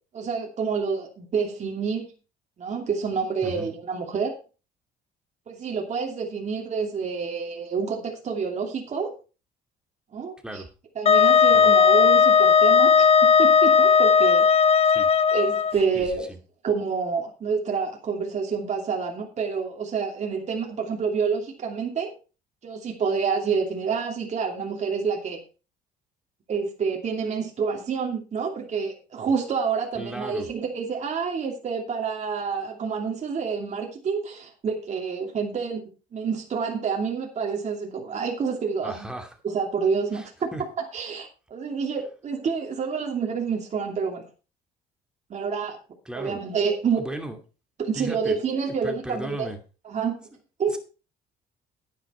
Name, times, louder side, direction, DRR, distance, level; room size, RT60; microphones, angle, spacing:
voice 1, 0.1-2.0 2.6-4.3 5.5-9.1 10.1-10.6 11.0-14.5 15.3-16.3 16.6-22.1 22.6-25.4 26.5-35.8 36.1-39.1 39.4-40.5 40.9-44.2 45.3-45.8 46.1-47.0 47.8-49.5 49.8-50.2 50.6-50.8, right 5 dB, 45° right, 1 dB, 2.8 m, -28 dB
Wind instrument woodwind instrument, 11.1-15.7, left 6 dB, 35° left, 0.7 m, -17 dB
voice 2, 15.9-16.4 29.9-30.5 38.8-39.3 40.1-40.6 46.1-46.4 47.0-47.4 47.9-48.4 48.7-49.6 50.7-50.8, right 1 dB, 5° right, 5 dB, 2.4 m, -36 dB
10.0 x 9.6 x 4.4 m, 0.34 s
cardioid pair, 110°, 17 cm